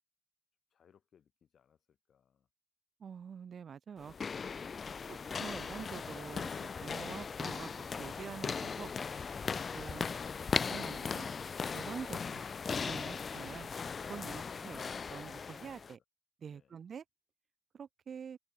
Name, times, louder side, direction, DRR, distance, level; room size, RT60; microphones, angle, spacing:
voice 1, 0.7-2.5 15.4-16.0 16.5-16.8, left 8 dB, 60° left, 7.1 m, -69 dB
voice 2, 3.0-4.1 5.1-8.9 9.7-10.1 10.7-11.3 11.7-13.7 14.1-14.8 15.1-16.0 16.4-17.0 17.7-18.4, right 7 dB, 55° right, 0.3 m, -46 dB
sound 1, 4.0-15.9, left 5 dB, 40° left, 0.3 m, -38 dB
cardioid pair, 120°, 0 cm